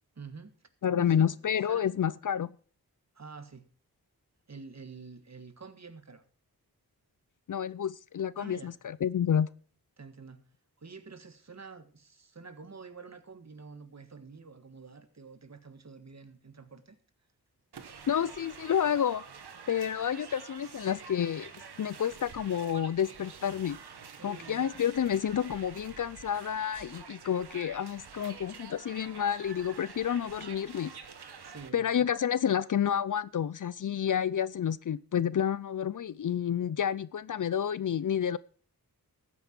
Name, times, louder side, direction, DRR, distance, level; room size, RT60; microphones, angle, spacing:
voice 1, 0.1-0.6 0.9-1.3 1.6-1.9 3.1-3.6 4.5-6.2 8.4-8.8 10.0-10.4 10.8-17.0 24.2-24.7 31.4-31.9, right 4 dB, 45° right, 1.5 m, -48 dB
voice 2, 0.8-2.5 7.5-9.5 18.1-19.2 19.7-21.5 21.8-23.8 24.2-30.9 31.7-38.4, left 9 dB, 55° left, 0.5 m, -29 dB
sound 1, 17.7-31.7, right 6 dB, 85° right, 1.3 m, -48 dB
14.0 x 8.7 x 4.4 m
cardioid pair, 60°, 38 cm